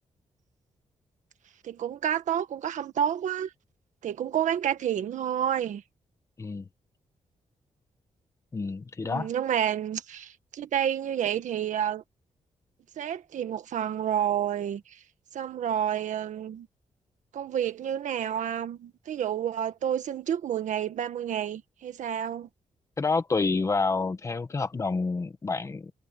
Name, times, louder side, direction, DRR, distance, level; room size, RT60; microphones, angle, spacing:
voice 1, 1.6-3.5 4.0-5.8 9.0-12.0 13.0-15.0 15.3-16.7 17.3-22.5, right 9 dB, 90° right, 1.6 m, -29 dB
voice 2, 6.4-6.7 8.5-9.3 23.0-25.9, left 4 dB, 25° left, 1.3 m, -28 dB
wide cardioid pair, 180°, 12 cm